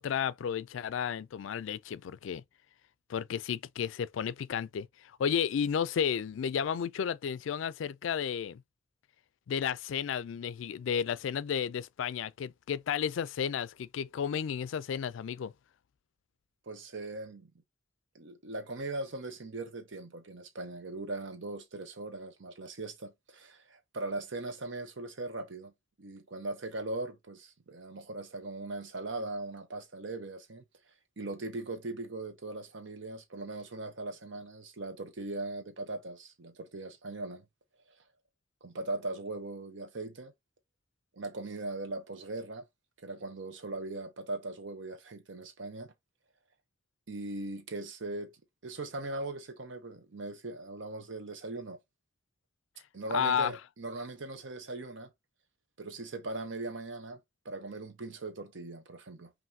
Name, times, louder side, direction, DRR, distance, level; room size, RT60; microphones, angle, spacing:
voice 1, 0.0-2.4 3.1-4.9 5.2-8.6 9.5-15.5 53.1-53.5, left 7 dB, 75° left, 0.3 m, -32 dB
voice 2, 16.7-17.5 18.1-25.7 26.0-30.6 31.2-37.4 38.6-40.3 41.2-42.6 43.0-45.9 47.1-48.3 48.6-51.8 52.9-55.1 55.8-57.2 57.4-59.3, right 2 dB, 70° right, 0.8 m, -39 dB
5.6 x 2.6 x 2.7 m
head